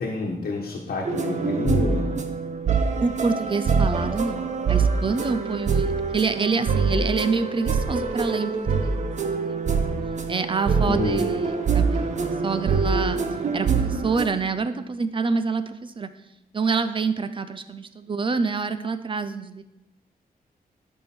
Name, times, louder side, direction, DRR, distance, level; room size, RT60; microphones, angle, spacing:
voice 1, 0.0-2.2 10.9-11.2, left 3 dB, 70° left, -2 dB, 1.3 m, -28 dB
sound 1, 1.0-14.3, right 5 dB, 50° right, 0.8 m, -24 dB
voice 2, 3.0-9.8 10.3-13.2 13.5-16.1 16.5-19.6, right 4 dB, 35° right, 10 dB, 0.4 m, -27 dB
12.0 x 5.5 x 4.3 m, 0.89 s
wide cardioid pair, 170°, 16 cm